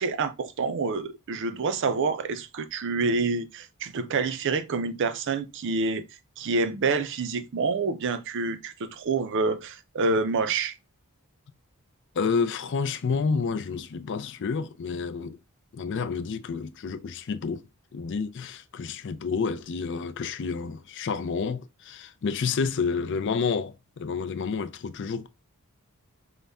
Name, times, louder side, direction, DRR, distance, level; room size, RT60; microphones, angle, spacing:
voice 1, 0.0-6.0 6.4-10.8, right 4 dB, 55° right, 0.4 m, -27 dB
voice 2, 12.2-15.4 15.7-17.6 17.9-25.3, left 5 dB, 55° left, 0.4 m, -29 dB
5.3 x 2.1 x 3.4 m
head